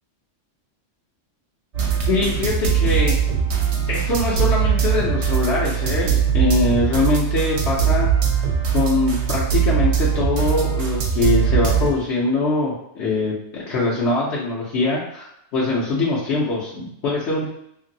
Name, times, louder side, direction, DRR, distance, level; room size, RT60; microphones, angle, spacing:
sound 1, 1.7-11.9, right 8 dB, 65° right, 0.9 m, -21 dB
voice 1, 2.1-3.1 3.9-8.1 8.3-8.4 8.7-17.5, left 3 dB, 70° left, -5 dB, 0.9 m, -22 dB
2.9 x 2.6 x 2.6 m, 0.75 s
omnidirectional pair, 1.3 m